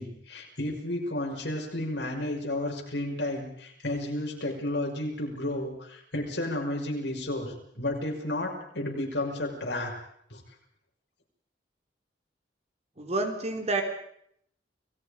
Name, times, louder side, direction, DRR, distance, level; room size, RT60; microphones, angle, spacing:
voice 1, 0.0-9.9 10.3-10.4, left 1 dB, 80° left, 0 dB, 6.0 m, -32 dB
voice 2, 13.0-13.8, right 3 dB, 40° right, 4 dB, 3.3 m, -29 dB
30.0 x 19.0 x 5.2 m, 0.71 s
head